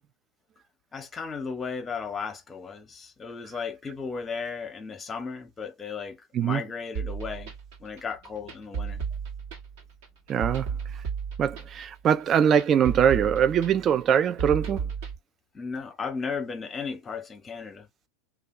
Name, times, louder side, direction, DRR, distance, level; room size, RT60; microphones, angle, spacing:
voice 1, 0.9-7.5 7.8-9.0 15.5-17.9, left 5 dB, 20° left, 0.9 m, -35 dB
sound 1, 6.9-15.2, right 6 dB, 65° right, 1.2 m, -34 dB
voice 2, 10.3-10.7 11.4-14.8, right 8 dB, 35° right, 0.4 m, -22 dB
2.7 x 2.4 x 2.4 m
hypercardioid pair, 85°, 0 cm